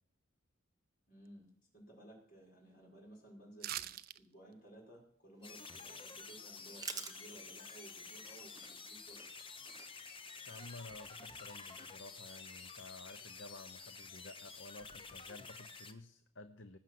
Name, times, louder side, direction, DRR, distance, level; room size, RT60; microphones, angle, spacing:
voice 1, 1.1-9.2, right 1 dB, 45° left, -2 dB, 5.5 m, -57 dB
sound 1, 3.6-4.2 4.5-4.6, right 12 dB, 45° right, 0.5 m, -42 dB
sound 2, 5.4-15.9, left 4 dB, 25° left, 1.0 m, -51 dB
sound 3, 5.4-12.3, right 6 dB, 20° right, 1.0 m, -52 dB
voice 2, 10.5-16.8, left 2 dB, 60° left, 10 dB, 0.8 m, -53 dB
19.0 x 7.2 x 7.7 m, 0.63 s
head